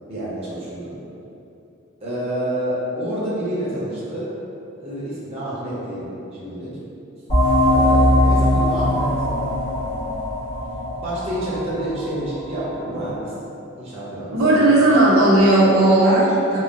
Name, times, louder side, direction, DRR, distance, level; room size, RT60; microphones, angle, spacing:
voice 1, 0.1-1.0 2.0-4.3 4.8-6.7 7.6-9.1 10.9-13.3 13.8-15.0, right 1 dB, 30° right, -9 dB, 0.7 m, -28 dB
sound 1, 7.3-12.6, left 1 dB, 35° left, 1.3 m, -20 dB
voice 2, 14.3-16.6, right 1 dB, 80° right, -7 dB, 0.6 m, -15 dB
3.7 x 2.1 x 2.5 m, 2.7 s
head